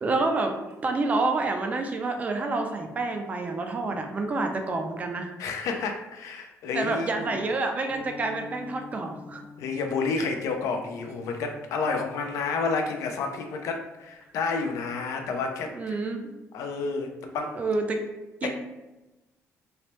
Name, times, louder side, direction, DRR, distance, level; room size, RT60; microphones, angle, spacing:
voice 1, 0.0-5.3 6.7-9.5 15.7-16.2 17.6-18.1 18.4-18.5, right 3 dB, 30° right, 4 dB, 0.3 m, -28 dB
voice 2, 5.4-7.4 9.6-16.0 16.5-17.6 18.4-18.5, left 4 dB, 75° left, 4 dB, 0.4 m, -30 dB
sound 1, 7.9-14.2, left 4 dB, 50° left, 1.1 m, -48 dB
3.1 x 2.0 x 2.9 m, 1.0 s
cardioid pair, 150°, 5 cm